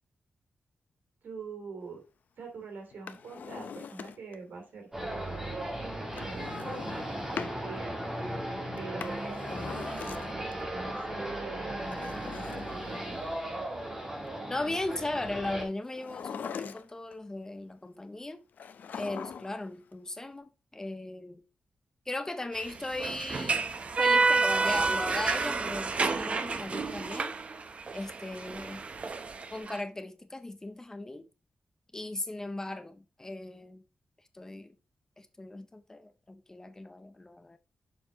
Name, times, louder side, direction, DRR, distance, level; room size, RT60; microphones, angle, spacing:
voice 1, 1.2-2.0 2.4-5.6 6.2-7.9 8.8-13.2, right 4 dB, 85° right, 2.9 m, -44 dB
Drawer open or close, 2.9-4.4 6.1-7.6 8.8-10.5 11.8-13.4 15.9-17.1 18.6-19.7 19.9-20.0, left 6 dB, 70° left, 0.6 m, -42 dB
sound 1, 4.9-15.6, right 1 dB, 15° right, 1.7 m, -37 dB
voice 2, 14.5-18.4 18.9-21.4 22.1-23.6 24.0-27.3 27.9-28.9 29.5-31.3 31.9-33.8 34.3-34.7 35.2-37.6, left 2 dB, 20° left, 0.6 m, -37 dB
sound 2, 22.6-29.8, right 4 dB, 40° right, 0.6 m, -29 dB
6.9 x 4.7 x 3.9 m
wide cardioid pair, 145°, 3 cm